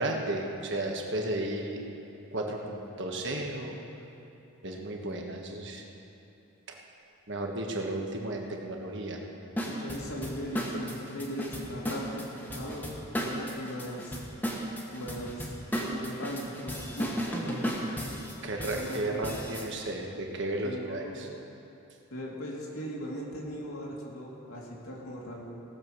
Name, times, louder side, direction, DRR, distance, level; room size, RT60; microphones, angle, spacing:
voice 1, 0.0-1.9 2.3-3.8 4.6-5.8 6.7-6.8 7.3-9.2 18.4-21.3, right 1 dB, 55° right, 1 dB, 1.4 m, -33 dB
voice 2, 9.6-14.2 14.9-18.1 18.6-19.4 20.6-21.4 22.1-25.4, equal, 75° left, -3 dB, 2.3 m, -39 dB
sound 1, 9.6-19.7, equal, 10° left, 1.2 m, -35 dB
17.5 x 7.1 x 6.2 m, 2.9 s
head